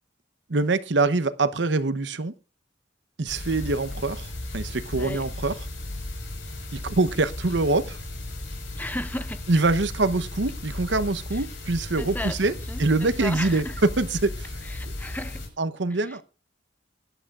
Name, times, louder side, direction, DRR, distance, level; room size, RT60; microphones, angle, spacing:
voice 1, 0.5-2.3 3.2-5.5 6.7-8.0 9.5-12.5 12.8-13.6 14.0-14.5 14.8-14.9 15.6-16.2, right 3 dB, 70° right, 0.9 m, -24 dB
sound 1, 3.3-15.5, left 1 dB, 80° left, 5.1 m, -35 dB
voice 2, 4.9-5.3 8.7-9.4 11.3-11.5 12.0-12.4 12.7-13.8 14.6-15.5 15.9-16.2, left 1 dB, 10° left, 0.7 m, -35 dB
20.0 x 11.5 x 2.5 m
head